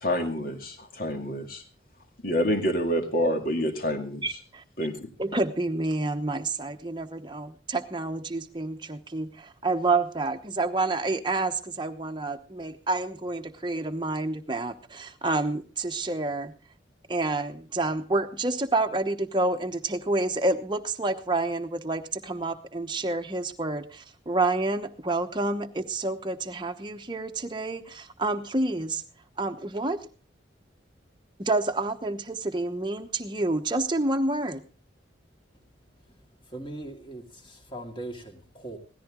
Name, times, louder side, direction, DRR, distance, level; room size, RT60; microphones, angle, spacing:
voice 1, 0.0-1.6 2.2-4.2 4.8-5.1, equal, 50° left, 4 dB, 2.3 m, -27 dB
voice 2, 4.2-4.6 5.2-16.5 17.1-29.0 29.4-30.0 31.4-34.6, right 2 dB, 25° right, 6 dB, 1.0 m, -28 dB
voice 3, 36.5-38.8, right 1 dB, 25° left, 2 dB, 2.5 m, -40 dB
17.0 x 14.0 x 3.7 m, 0.35 s
head